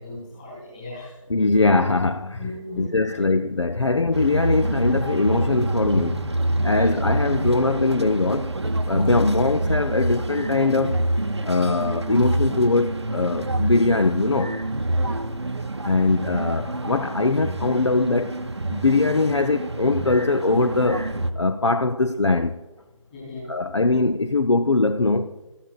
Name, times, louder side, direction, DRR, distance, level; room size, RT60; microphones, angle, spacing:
voice 1, 0.0-1.2 2.4-3.2 6.7-6.9 9.0-9.1 14.9-15.3 23.1-23.5, left 1 dB, 15° left, 3.9 m, -38 dB
voice 2, 1.3-2.4 2.8-6.2 6.6-8.5 8.9-11.0 11.4-14.7 15.8-18.3 18.7-22.5 23.5-25.3, left 3 dB, 60° left, 0.5 m, -21 dB
sound 1, 4.1-21.3, right 1 dB, 55° right, 0.7 m, -26 dB
14.0 x 12.5 x 2.4 m
figure-of-eight pair, 165°, 17 cm